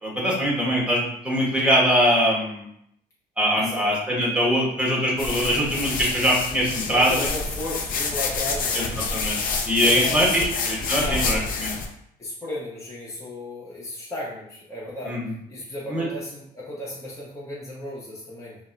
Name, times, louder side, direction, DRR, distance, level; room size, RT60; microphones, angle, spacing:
voice 1, 0.0-2.7 3.4-7.3 8.7-8.8 9.1-9.4 9.7-11.7 15.0-15.3 15.9-16.0, equal, 5° right, -4 dB, 1.2 m, -22 dB
voice 2, 3.6-3.9 6.9-8.9 9.8-10.5 10.9-11.4 12.2-15.2 15.5-18.6, left 1 dB, 20° left, -6 dB, 0.9 m, -34 dB
sound 1, 5.2-11.9, left 4 dB, 55° left, 0.6 m, -28 dB
5.1 x 2.2 x 2.6 m, 0.74 s
cardioid pair, 110°, 17 cm